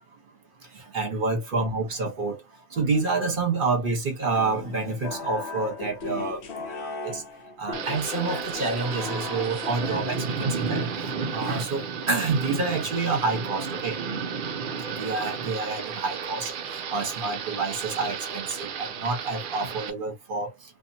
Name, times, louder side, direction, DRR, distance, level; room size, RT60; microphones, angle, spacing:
voice 1, 0.9-2.4 2.7-6.4 6.7-7.2 7.6-10.8 11.2-14.0 14.9-16.5 16.9-20.5, right 3 dB, 45° right, 1.1 m, -28 dB
sound 1, 4.3-11.7, left 3 dB, 60° left, 1.0 m, -37 dB
Thunder / Rain, 7.7-19.9, right 5 dB, 60° right, 0.5 m, -32 dB
2.8 x 2.4 x 2.6 m
omnidirectional pair, 1.4 m